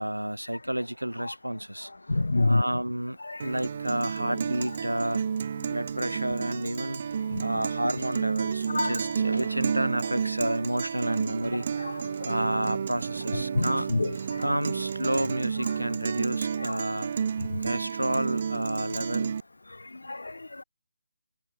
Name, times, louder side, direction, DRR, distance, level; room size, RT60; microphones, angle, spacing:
voice 1, 0.0-1.9 2.4-5.2 5.7-7.1 7.4-11.7 12.2-13.9 14.4-17.1 17.6-19.4, right 1 dB, 90° right, 1.9 m, -30 dB
voice 2, 2.1-2.6 3.3-3.4 7.3-7.4 8.7-9.0 11.8-11.9 12.2-12.3 13.5-14.5 16.6-16.7 20.0-20.6, left 2 dB, 70° left, 0.5 m, -27 dB
Guitar, 3.4-19.4, right 7 dB, 40° right, 0.5 m, -31 dB
figure-of-eight pair, 150°, 0 cm